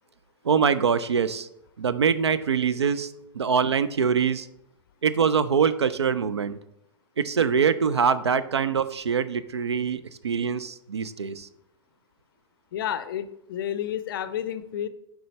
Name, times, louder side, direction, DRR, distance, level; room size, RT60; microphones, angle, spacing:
voice 1, 0.4-1.5 1.8-4.5 5.0-6.6 7.2-11.5, right 6 dB, 75° right, 14 dB, 0.4 m, -24 dB
voice 2, 12.7-14.9, left 10 dB, 50° left, 13 dB, 0.5 m, -30 dB
7.7 x 4.7 x 3.2 m, 0.78 s
figure-of-eight pair, 100°, 14 cm